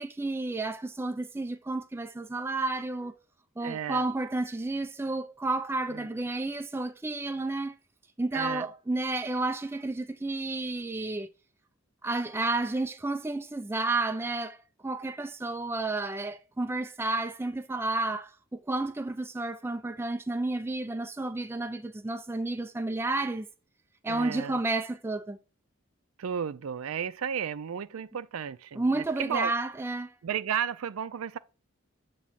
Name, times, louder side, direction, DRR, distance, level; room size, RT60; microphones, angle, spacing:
voice 1, 0.0-3.1 3.6-7.7 8.2-11.3 12.0-23.5 24.0-25.4 28.8-30.1, right 2 dB, 10° right, 0.4 m, -31 dB
voice 2, 3.6-4.1 5.9-6.1 8.3-8.7 24.1-24.6 26.2-29.5 30.2-31.4, right 8 dB, 90° right, 0.4 m, -33 dB
7.4 x 3.1 x 5.6 m
head